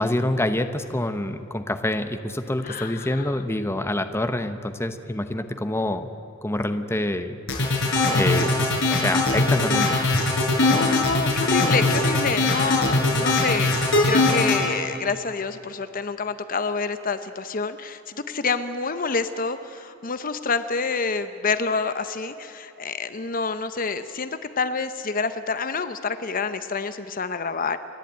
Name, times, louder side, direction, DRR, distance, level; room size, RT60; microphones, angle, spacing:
voice 1, 0.0-6.1 6.4-7.4 8.1-10.0, left 1 dB, 15° left, 8 dB, 0.9 m, -26 dB
voice 2, 2.6-3.4 10.6-13.7 14.0-18.0 18.3-24.3 24.6-27.8, left 4 dB, 45° left, 11 dB, 0.8 m, -27 dB
sound 1, 7.5-14.6, left 2 dB, 70° left, 5.5 m, -21 dB
29.0 x 11.5 x 9.0 m, 3.0 s
head